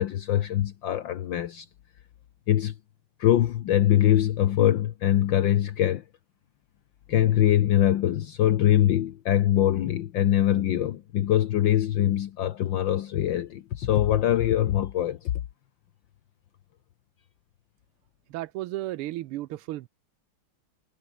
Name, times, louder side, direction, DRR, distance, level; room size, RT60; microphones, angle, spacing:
voice 1, 0.0-1.7 2.5-2.7 3.2-6.0 7.1-15.3, left 12 dB, 65° left, 1.5 m, -23 dB
voice 2, 18.3-19.9, right 16 dB, 85° right, 1.6 m, -33 dB
omnidirectional pair, 2.4 m